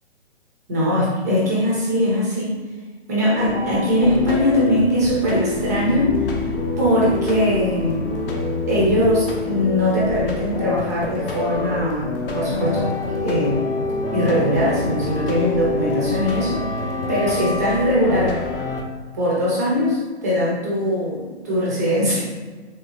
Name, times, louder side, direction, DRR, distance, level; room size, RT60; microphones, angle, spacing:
voice 1, 0.7-2.6 3.1-6.1 6.8-8.1 8.7-13.6 14.1-16.7 17.1-18.4 19.1-22.3, equal, 15° right, -5 dB, 0.4 m, -21 dB
sound 1, 3.4-18.8, left 3 dB, 55° left, 0.6 m, -26 dB
3.2 x 2.7 x 2.9 m, 1.4 s
hypercardioid pair, 140°, 34 cm